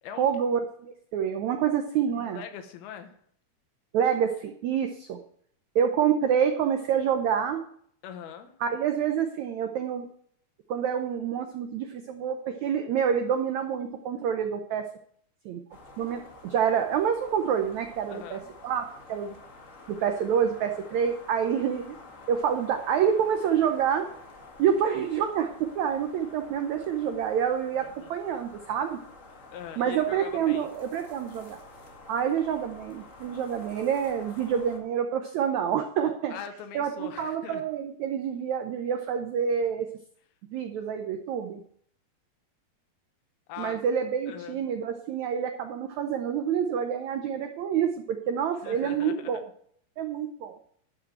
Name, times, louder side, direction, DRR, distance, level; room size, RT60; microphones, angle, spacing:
voice 1, 0.2-2.4 3.9-5.2 5.7-7.6 8.6-10.1 10.7-14.8 15.4-15.6 16.0-18.8 19.1-19.3 19.9-21.9 22.3-24.1 24.6-27.8 28.1-29.0 29.8-31.6 32.1-36.3 36.7-39.9 40.5-41.6 43.6-49.4 50.0-50.5, right 8 dB, 85° right, 6 dB, 1.6 m, -27 dB
voice 2, 2.2-3.2 8.0-8.5 18.1-18.5 27.7-28.1 29.5-30.7 36.3-37.6 43.5-43.8 44.3-44.6 48.6-49.4, left 8 dB, 80° left, 7 dB, 3.0 m, -41 dB
sound 1, 15.7-34.8, left 2 dB, 40° left, 1.1 m, -49 dB
12.0 x 5.2 x 7.7 m, 0.62 s
omnidirectional pair, 4.4 m